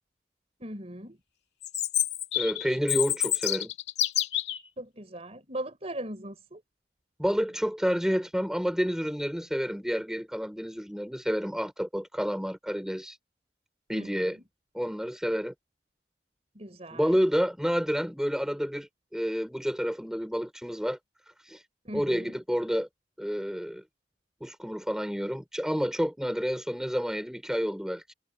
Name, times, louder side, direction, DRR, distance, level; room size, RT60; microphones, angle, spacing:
voice 1, 0.6-1.2 4.8-6.6 13.9-14.4 16.5-17.2 21.8-22.4, right 1 dB, 35° right, 4.1 m, -39 dB
Chirp tweet, 1.6-4.6, left 12 dB, 65° left, 2.7 m, -28 dB
voice 2, 2.3-3.7 7.2-13.2 13.9-14.4 14.7-15.5 16.9-21.0 21.4-21.6 21.9-22.9 23.2-23.8 24.4-28.1, equal, 5° right, 3.5 m, -29 dB
head